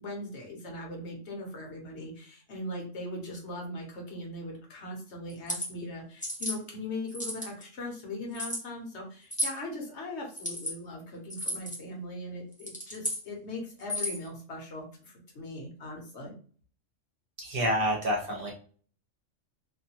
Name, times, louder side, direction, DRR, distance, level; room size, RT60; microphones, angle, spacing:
voice 1, 0.0-16.3, left 1 dB, 65° left, 0 dB, 1.0 m, -40 dB
sound 1, 5.3-5.7 6.2-6.6 7.1-7.6 8.3-8.6 9.3-9.6 10.3-10.7 11.3-11.8 12.5-13.2 13.8-14.3, equal, 10° left, 0.6 m, -33 dB
voice 2, 17.4-18.5, equal, 55° right, -2 dB, 0.8 m, -28 dB
2.5 x 2.2 x 2.8 m, 0.43 s
omnidirectional pair, 1.3 m